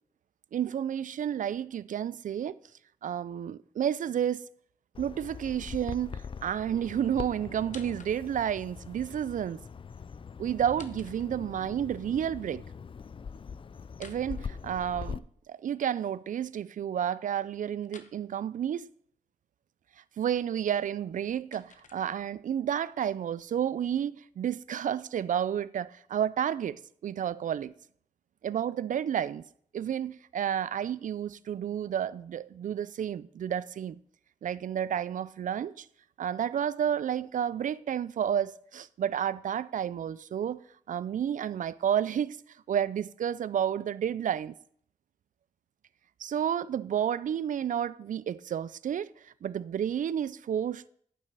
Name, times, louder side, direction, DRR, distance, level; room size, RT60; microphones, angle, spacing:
voice 1, 0.5-2.6 3.0-4.4 5.0-9.6 10.4-12.6 14.0-18.9 20.2-27.7 28.4-29.4 29.7-34.0 34.4-35.9 36.2-40.6 40.9-42.4 42.7-44.5 46.2-50.9, right 9 dB, 75° right, 0.4 m, -31 dB
Bird vocalization bird call bird song, 4.9-15.2, left 6 dB, 40° left, 0.4 m, -42 dB
sound 1, 7.6-8.5 10.5-11.7 13.9-15.2 17.8-18.2 20.9-22.5, left 5 dB, 70° left, 0.9 m, -54 dB
12.0 x 5.7 x 4.7 m
cardioid pair, 50°, 13 cm